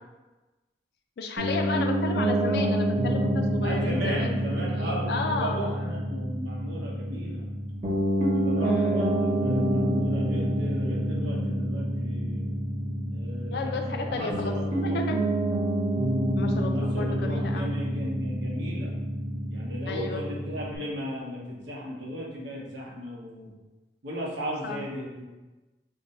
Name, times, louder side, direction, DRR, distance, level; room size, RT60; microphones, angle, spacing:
voice 1, 1.2-5.6 8.7-9.2 13.5-14.5 14.8-15.2 16.4-17.8 19.9-20.2 24.6-24.8, left 4 dB, 60° left, 4 dB, 0.3 m, -33 dB
Piano, 1.4-20.8, right 1 dB, 30° right, 0.6 m, -27 dB
voice 2, 3.6-7.4 8.2-12.5 13.1-15.0 16.7-18.9 19.5-23.5 24.0-25.2, equal, 90° right, -3 dB, 0.8 m, -36 dB
2.6 x 2.2 x 4.0 m, 1.1 s
head